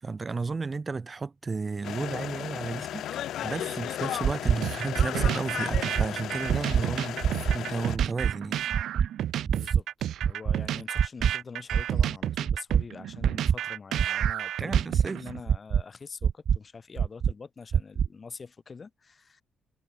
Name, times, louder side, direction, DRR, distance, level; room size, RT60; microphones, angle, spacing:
voice 1, 0.0-3.1 3.4-7.2 7.5-8.6 10.7-10.8 14.6-15.3, right 4 dB, 25° right, 7.9 m, -33 dB
sound 1, 1.8-8.0, left 11 dB, 85° left, 1.9 m, -35 dB
sound 2, 4.2-4.5 5.0-5.3 5.7-6.1 6.5-6.8 7.2-7.6 8.0-8.3 8.7-9.1 9.5-9.8 10.2-10.6 11.0-11.3 11.7-12.1 12.5-12.8 13.2-13.5 14.0-14.3 14.7-15.1 15.5-15.8 16.2-16.6 17.0-17.3 17.7-18.1, right 7 dB, 55° right, 0.8 m, -23 dB
sound 3, 4.6-15.4, right 11 dB, 85° right, 2.3 m, -32 dB
voice 2, 9.4-9.9 10.3-19.4, left 5 dB, 35° left, 7.7 m, -44 dB
cardioid pair, 130°, 0 cm